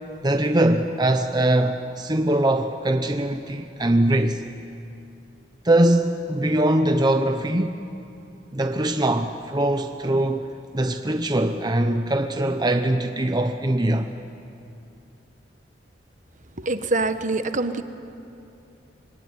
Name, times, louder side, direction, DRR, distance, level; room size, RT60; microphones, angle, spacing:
voice 1, 0.2-4.4 5.6-7.8 8.5-14.1, right 1 dB, 25° right, 0.9 m, -22 dB
voice 2, 16.6-17.8, right 2 dB, 45° right, 1.3 m, -24 dB
25.0 x 23.5 x 9.8 m
head